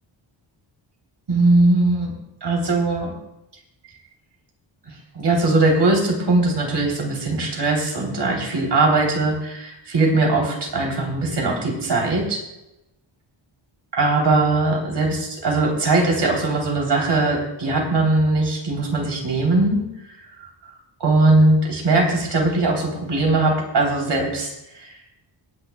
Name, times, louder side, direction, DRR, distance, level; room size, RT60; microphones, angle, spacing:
voice 1, 1.3-2.1 2.4-3.1 5.1-12.4 13.9-19.8 21.0-24.9, right 2 dB, 60° right, -1 dB, 3.2 m, -20 dB
29.5 x 10.0 x 2.2 m, 0.91 s
wide cardioid pair, 175°, 48 cm